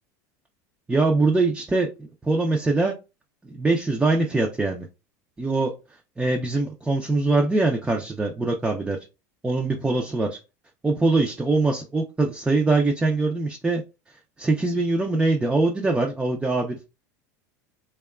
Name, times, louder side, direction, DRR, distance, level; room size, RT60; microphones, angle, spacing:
voice 1, 0.9-1.9 2.2-3.0 3.4-4.9 5.4-5.7 6.2-9.0 9.4-10.4 10.8-13.8 14.4-16.8, right 3 dB, 10° right, 0.4 m, -23 dB
2.8 x 2.2 x 2.2 m
supercardioid pair, 110°, 9 cm